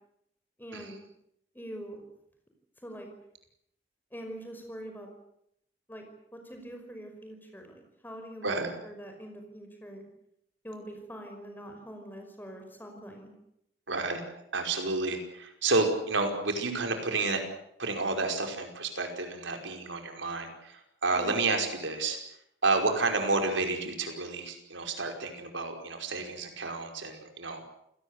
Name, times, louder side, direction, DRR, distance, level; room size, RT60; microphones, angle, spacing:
voice 1, 0.6-1.0 1.5-2.0 2.8-3.1 4.1-5.1 5.9-6.0 6.3-10.0 10.6-13.3 21.1-21.4, right 1 dB, 10° left, 4 dB, 5.5 m, -44 dB
voice 2, 8.4-8.7 13.9-17.4 17.8-22.2 22.6-27.6, right 3 dB, 85° right, 4 dB, 5.1 m, -30 dB
28.5 x 18.0 x 8.2 m, 0.75 s
head